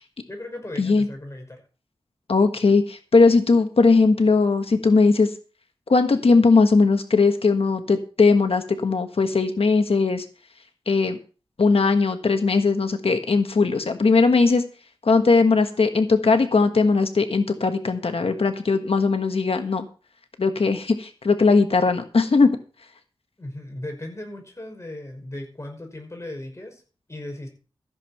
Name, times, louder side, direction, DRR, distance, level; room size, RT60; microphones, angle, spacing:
voice 1, 0.3-1.6 23.4-26.8 27.1-27.5, left 1 dB, 30° left, 3 dB, 5.7 m, -37 dB
voice 2, 2.3-5.3 5.9-10.2 10.9-11.2 11.6-14.6 15.0-19.8 20.4-22.5, left 4 dB, 70° left, 7 dB, 1.5 m, -19 dB
14.5 x 7.6 x 5.9 m, 0.37 s
wide cardioid pair, 70°, 10 cm